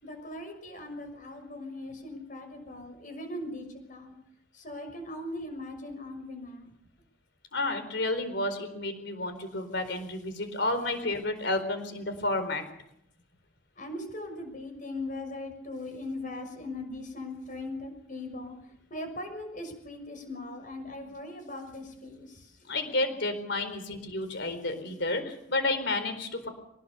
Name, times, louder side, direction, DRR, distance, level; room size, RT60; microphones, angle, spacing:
voice 1, 0.0-4.1 4.5-6.7 13.8-22.6, left 2 dB, 40° left, 5 dB, 6.2 m, -40 dB
voice 2, 7.5-12.6 22.7-26.5, left 2 dB, 55° left, 9 dB, 4.3 m, -31 dB
24.0 x 19.5 x 7.0 m, 0.76 s
head